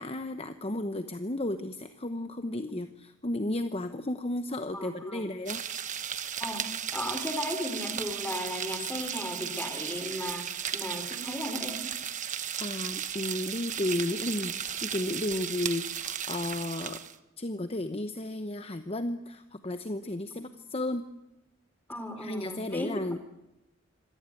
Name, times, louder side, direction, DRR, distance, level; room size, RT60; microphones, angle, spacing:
voice 1, 0.0-5.6 12.3-17.0 17.4-21.1 22.2-23.2, left 1 dB, 30° left, 9 dB, 0.9 m, -33 dB
voice 2, 4.7-5.3 6.4-11.9 20.3-20.4 21.9-22.9, left 1 dB, 10° left, 7 dB, 3.2 m, -36 dB
sound 1, 5.5-17.1, right 9 dB, 35° right, 1.2 m, -35 dB
26.0 x 17.5 x 9.2 m, 0.91 s
head